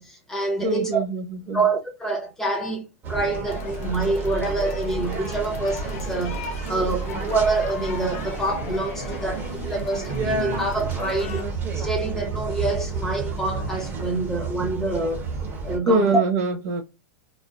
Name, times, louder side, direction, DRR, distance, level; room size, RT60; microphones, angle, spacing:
voice 1, 0.0-1.0 1.5-11.5 11.7-15.3 15.6-16.2, right 2 dB, 5° left, 0.9 m, -26 dB
voice 2, 0.6-1.7 15.8-16.8, right 2 dB, 60° right, 0.9 m, -24 dB
sound 1, 3.0-15.8, right 4 dB, 20° right, 0.7 m, -30 dB
sound 2, 3.4-11.4, left 5 dB, 70° left, 0.7 m, -39 dB
2.4 x 2.2 x 2.4 m
supercardioid pair, 135°, 8 cm